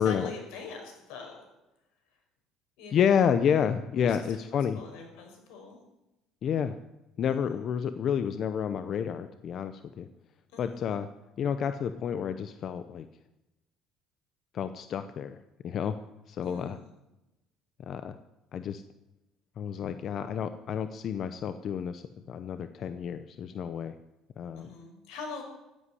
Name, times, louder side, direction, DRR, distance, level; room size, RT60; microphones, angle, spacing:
voice 1, 0.0-1.4 2.8-3.1 4.0-5.8 7.2-7.6 10.5-10.9 16.4-16.9 24.5-25.4, left 4 dB, 85° left, 2 dB, 5.6 m, -43 dB
voice 2, 2.9-4.8 6.4-6.8 7.2-10.1 10.6-11.1 11.4-13.1 14.5-15.4 15.6-16.0 16.3-16.8 17.9-18.2 18.5-18.8 19.6-22.0 22.3-24.0 24.4-24.7, left 8 dB, 45° left, 10 dB, 0.7 m, -29 dB
15.0 x 8.4 x 9.8 m, 0.97 s
cardioid pair, 145°, 0 cm